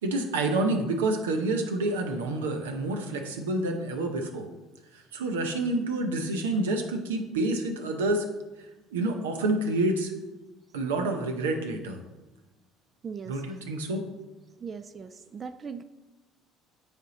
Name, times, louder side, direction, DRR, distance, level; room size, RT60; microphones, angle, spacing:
voice 1, 0.0-4.5 4.9-8.3 8.9-10.1 10.7-12.0 13.3-14.0, right 2 dB, 90° right, 5 dB, 0.8 m, -28 dB
voice 2, 13.0-13.4 14.6-15.8, right 5 dB, 40° right, 10 dB, 0.3 m, -39 dB
9.0 x 3.6 x 4.0 m, 1.1 s
hypercardioid pair, 70°, 0 cm